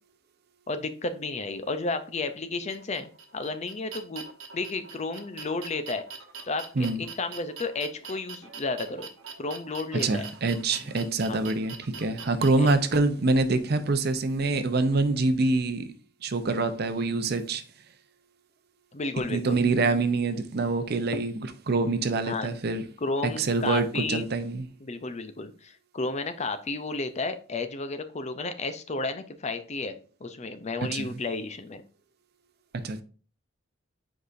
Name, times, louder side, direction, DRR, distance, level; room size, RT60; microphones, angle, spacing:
voice 1, 0.7-4.3 4.5-6.0 6.5-6.6 7.0-9.1 9.4-10.3 11.3-11.4 12.6-12.7 18.9-19.6 22.3-22.5 23.0-24.3 24.8-31.8, left 3 dB, 35° left, 0.6 m, -32 dB
sound 1, 2.7-12.7, right 6 dB, 90° right, 1.0 m, -43 dB
voice 2, 10.0-15.9 16.2-17.6 19.3-22.8 23.4-24.7 30.9-31.2 32.7-33.0, right 3 dB, 55° right, 0.7 m, -25 dB
7.8 x 4.8 x 2.6 m
head